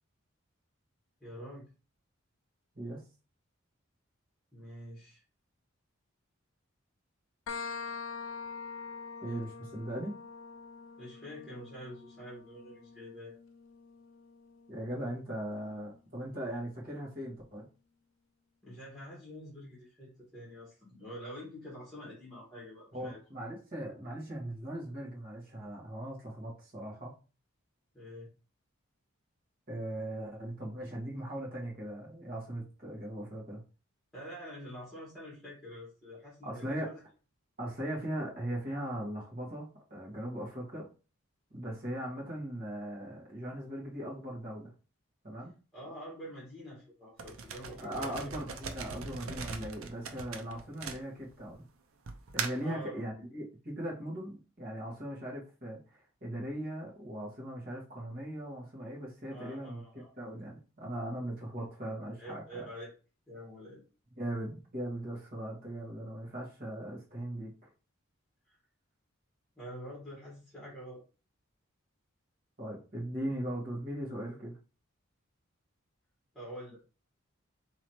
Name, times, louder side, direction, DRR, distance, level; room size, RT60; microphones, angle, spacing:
voice 1, 1.2-1.7 4.5-5.2 11.0-13.3 18.6-23.2 27.9-28.3 34.1-37.0 45.7-48.3 48.9-49.1 52.6-53.0 59.3-60.1 62.2-62.9 63.3-63.8 68.4-68.6 69.6-71.0 76.3-76.8, equal, ahead, -6 dB, 1.5 m, -46 dB
sound 1, 7.5-14.9, left 5 dB, 65° left, 0.4 m, -45 dB
voice 2, 9.2-10.1 14.7-17.7 22.9-27.1 29.7-33.6 36.4-36.9 37.6-40.9 41.5-44.7 45.2-45.5 47.8-51.7 52.3-59.8 60.2-62.7 64.2-67.5 72.6-74.5, right 1 dB, 40° right, -4 dB, 1.7 m, -39 dB
sound 2, 47.2-51.5 52.1-52.7, right 5 dB, 80° right, 0.6 m, -40 dB
4.0 x 3.0 x 3.0 m, 0.34 s
head